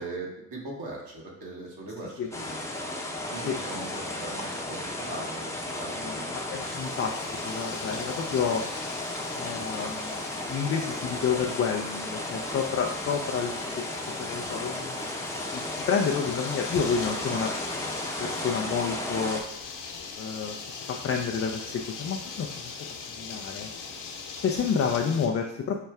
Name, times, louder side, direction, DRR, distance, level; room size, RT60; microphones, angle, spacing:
voice 1, 0.0-2.7 3.3-6.5, right 2 dB, 50° right, -2 dB, 1.5 m, -40 dB
sound 1, 2.3-19.4, left 1 dB, 5° left, 0.8 m, -34 dB
voice 2, 6.0-8.6 9.3-10.2 10.5-15.0 15.5-17.5 18.2-19.4 20.2-22.8 23.1-23.7 24.4-25.8, left 6 dB, 30° left, 2 dB, 0.4 m, -30 dB
sound 2, 6.6-25.3, left 5 dB, 55° left, 1.1 m, -42 dB
5.6 x 2.2 x 3.4 m, 0.80 s
hypercardioid pair, 60°, 49 cm